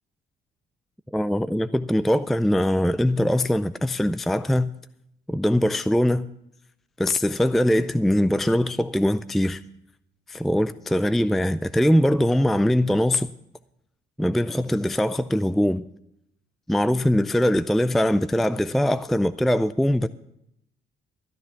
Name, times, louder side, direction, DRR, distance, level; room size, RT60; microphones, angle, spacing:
voice 1, 1.1-4.7 5.3-6.3 7.0-9.6 10.3-13.3 14.2-15.8 16.7-20.1, left 1 dB, ahead, 0.4 m, -22 dB
13.5 x 9.9 x 5.9 m
cardioid pair, 90°, 20 cm